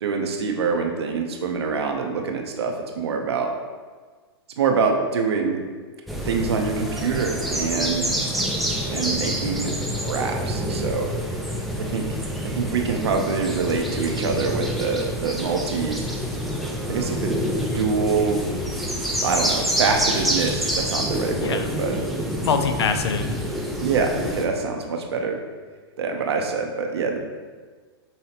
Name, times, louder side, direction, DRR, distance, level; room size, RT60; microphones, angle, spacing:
voice 1, 0.0-3.5 4.6-5.6 6.3-8.3 8.9-9.7 10.0-11.1 11.8-12.1 12.5-16.0 16.9-18.5 19.2-22.0 23.8-25.4 26.0-27.2, right 5 dB, 75° right, 3 dB, 0.8 m, -25 dB
sound 1, 6.1-24.5, equal, ahead, 0.5 m, -27 dB
voice 2, 21.4-21.7 22.4-23.4, left 6 dB, 80° left, 8 dB, 0.5 m, -24 dB
5.6 x 3.1 x 2.9 m, 1.5 s
hypercardioid pair, 130°, 14 cm